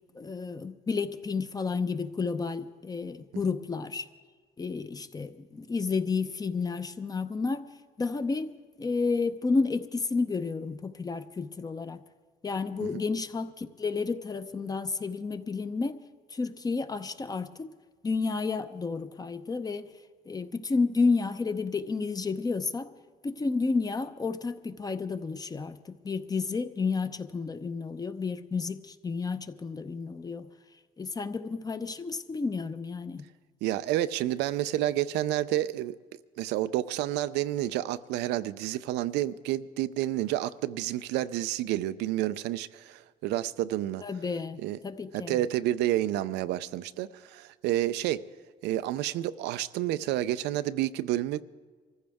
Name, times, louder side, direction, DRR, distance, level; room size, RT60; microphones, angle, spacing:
voice 1, 0.1-4.1 4.6-7.6 8.0-8.5 8.8-12.0 12.4-16.0 16.3-17.7 18.0-19.9 20.3-22.9 23.2-30.5 31.0-33.2 44.0-45.4, left 4 dB, 20° left, 0.7 m, -31 dB
voice 2, 33.6-36.0 36.4-44.0 44.6-44.8 45.1-48.2 48.6-51.4, right 14 dB, 85° right, 0.5 m, -29 dB
24.0 x 15.0 x 3.5 m
cardioid pair, 110°, 17 cm